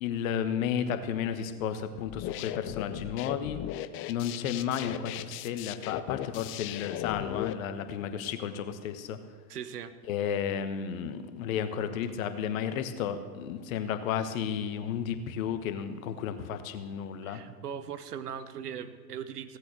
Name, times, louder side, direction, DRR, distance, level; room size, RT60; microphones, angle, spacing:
voice 1, 0.0-3.6 4.1-9.2 10.1-17.4, left 8 dB, 60° left, 9 dB, 1.3 m, -33 dB
sound 1, 2.1-7.5, left 14 dB, 30° left, 0.4 m, -37 dB
voice 2, 9.5-9.9 13.8-13.9 17.2-19.6, right 8 dB, 75° right, 12 dB, 1.0 m, -39 dB
16.5 x 8.3 x 6.3 m, 1.5 s
hypercardioid pair, 90°, 46 cm